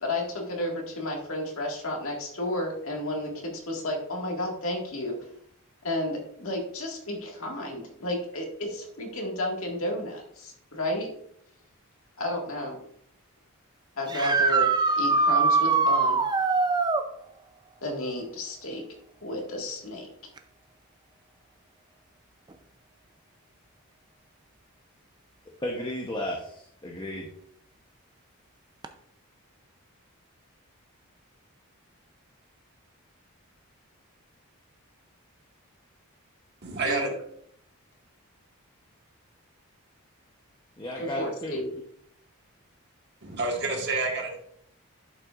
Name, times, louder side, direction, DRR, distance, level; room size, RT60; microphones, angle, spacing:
voice 1, 0.0-5.1 5.8-11.1 12.2-12.8 14.0-14.7 15.0-16.2 17.8-18.8 19.2-20.1 36.9-37.1 41.0-41.7, left 1 dB, 65° left, 1 dB, 1.8 m, -32 dB
sound 1, 14.1-17.1 20.4-20.5 22.5-22.6 28.8-28.9, right 4 dB, 20° right, 0.5 m, -22 dB
voice 2, 25.6-27.3 40.8-41.6, left 1 dB, 20° left, -1 dB, 0.8 m, -34 dB
voice 3, 36.6-37.1 43.2-44.4, right 3 dB, 50° right, 2 dB, 1.4 m, -28 dB
11.0 x 5.7 x 2.4 m, 0.68 s
head